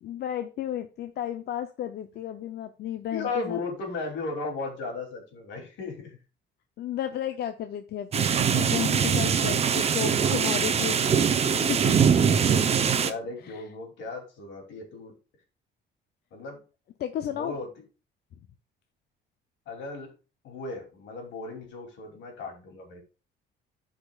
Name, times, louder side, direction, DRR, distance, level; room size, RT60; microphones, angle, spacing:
voice 1, 0.0-3.6 6.8-11.9 13.4-13.6 17.0-17.6, left 10 dB, 60° left, 8 dB, 0.6 m, -33 dB
voice 2, 3.1-6.2 9.0-10.8 11.9-15.1 16.3-16.6 17.2-17.7 19.7-20.1 20.4-23.0, left 3 dB, 80° left, 2 dB, 2.9 m, -37 dB
sound 1, 8.1-13.1, right 7 dB, 35° right, 0.7 m, -22 dB
13.5 x 5.1 x 2.4 m, 0.32 s
cardioid pair, 140°, 19 cm